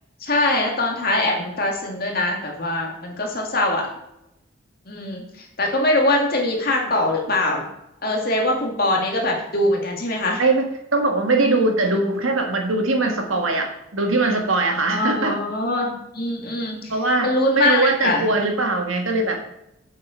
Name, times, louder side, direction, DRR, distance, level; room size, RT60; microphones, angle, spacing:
voice 1, 0.2-3.9 4.9-7.7 8.0-10.4 14.9-16.9 17.2-18.3, left 1 dB, 45° left, 0 dB, 2.1 m, -22 dB
voice 2, 10.4-15.4 16.9-17.3 17.5-19.4, right 2 dB, 80° right, 3 dB, 1.6 m, -21 dB
7.8 x 7.5 x 5.1 m, 0.84 s
head